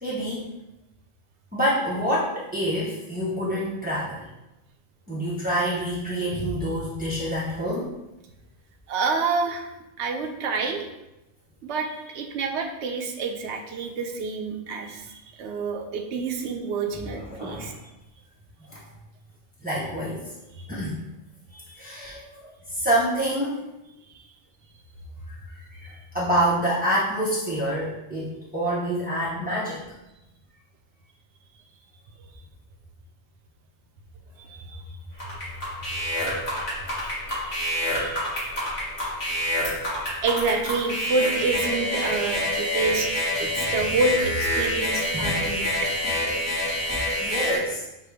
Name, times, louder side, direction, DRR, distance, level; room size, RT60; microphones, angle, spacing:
voice 1, 0.0-0.5 1.5-4.3 5.1-7.9 17.1-17.8 18.7-18.8 19.6-20.3 20.7-21.0 21.5-23.7 25.3-29.8 45.1-45.4 46.9-47.8, right 1 dB, 15° right, -7 dB, 0.4 m, -27 dB
voice 2, 8.9-9.7 10.0-10.9 11.6-17.7 20.6-20.7 24.1-24.3 34.4-35.0 36.2-36.3 36.9-38.7 40.2-43.1 43.4-45.7, right 4 dB, 65° right, 4 dB, 0.9 m, -28 dB
sound 1, 35.2-47.6, left 1 dB, 45° left, 1.7 m, -27 dB
6.4 x 2.2 x 3.4 m, 0.94 s
omnidirectional pair, 1.3 m